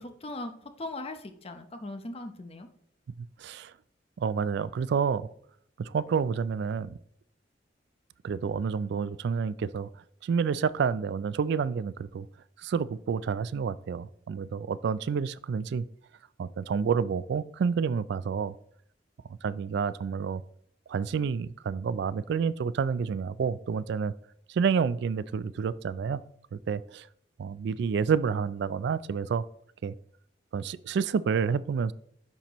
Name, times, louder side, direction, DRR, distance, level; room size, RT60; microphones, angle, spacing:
voice 1, 0.0-2.7, left 2 dB, 35° left, 7 dB, 0.7 m, -39 dB
voice 2, 3.2-3.7 4.2-5.3 5.8-7.0 8.2-9.9 10.2-12.3 12.6-15.9 16.4-18.5 19.4-20.4 20.9-24.1 24.5-26.2 26.5-27.1 27.4-29.4 29.8-29.9 30.5-31.9, right 6 dB, 65° right, 17 dB, 0.3 m, -29 dB
11.0 x 4.3 x 3.0 m, 0.70 s
head